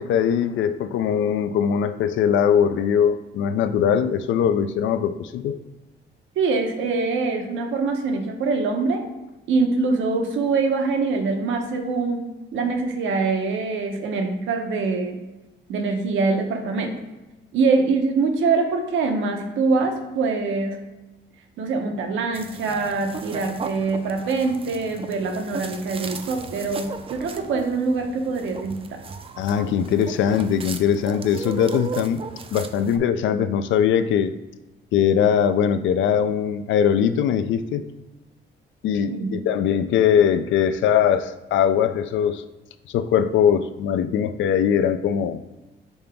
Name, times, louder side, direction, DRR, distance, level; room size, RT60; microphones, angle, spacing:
voice 1, 0.0-5.6 29.4-32.2 32.5-34.3 34.9-37.9 38.8-42.4 42.9-45.4, left 8 dB, 75° left, 11 dB, 0.4 m, -21 dB
voice 2, 6.4-9.0 9.5-12.3 12.5-15.2 15.7-17.0 17.5-20.8 21.6-29.0 39.1-39.3, right 4 dB, 75° right, 4 dB, 0.8 m, -24 dB
sound 1, 22.3-33.0, right 5 dB, 30° right, 0.4 m, -36 dB
5.4 x 2.9 x 3.4 m, 1.1 s
cardioid pair, 90°, 20 cm